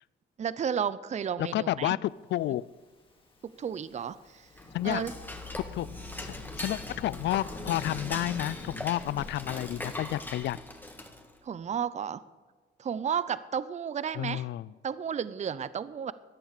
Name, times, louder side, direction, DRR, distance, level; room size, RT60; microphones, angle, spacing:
voice 1, 0.4-1.9 2.5-2.6 3.4-4.5 4.8-5.1 11.4-12.2 12.8-14.4 14.8-16.1, right 8 dB, 35° right, 16 dB, 0.6 m, -32 dB
voice 2, 1.4-2.7 4.7-5.0 5.7-5.9 6.2-10.6 14.1-14.7, left 14 dB, 65° left, 21 dB, 0.4 m, -31 dB
Thunderstorm / Rain, 2.7-10.4, left 1 dB, 25° left, 2.5 m, -46 dB
Dishes pots and pans / Cutlery silverware, 4.5-11.4, left 1 dB, 10° left, 1.8 m, -41 dB
14.5 x 10.0 x 6.6 m, 1.4 s
cardioid pair, 90°, 20 cm